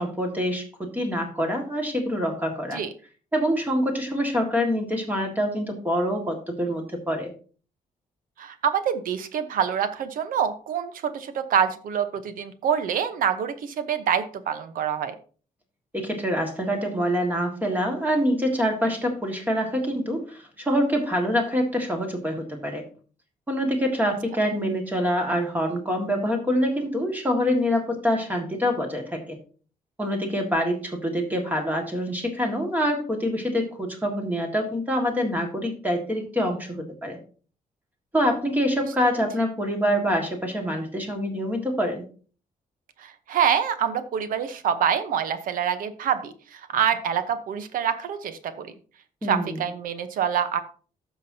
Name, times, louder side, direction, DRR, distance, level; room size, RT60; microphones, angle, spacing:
voice 1, 0.0-2.8 3.3-7.3 15.9-22.8 23.5-29.4 30.0-37.2 38.1-42.0 49.2-49.6, equal, 10° right, 2 dB, 1.8 m, -25 dB
voice 2, 8.4-15.1 43.0-48.7 49.3-50.6, right 8 dB, 75° right, 11 dB, 1.0 m, -26 dB
15.0 x 6.2 x 2.8 m, 0.40 s
wide cardioid pair, 170°, 14 cm